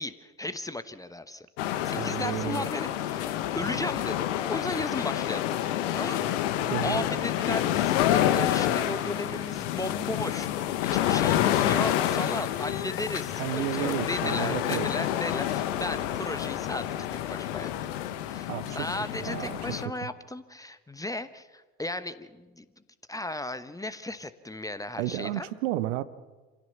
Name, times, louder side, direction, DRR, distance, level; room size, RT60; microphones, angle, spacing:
voice 1, 0.0-1.5 1.8-5.5 6.0-17.7 18.3-22.6 23.1-25.5, left 2 dB, 10° left, 12 dB, 1.1 m, -35 dB
sound 1, 1.6-19.9, left 12 dB, 60° left, 1.5 m, -28 dB
voice 2, 2.0-2.7 6.7-7.1 13.4-14.9 18.5-18.9 19.2-19.6 20.0-20.1 25.0-26.0, right 15 dB, 60° right, 14 dB, 1.1 m, -32 dB
28.0 x 16.5 x 7.1 m, 1.3 s
figure-of-eight pair, 65°, 42 cm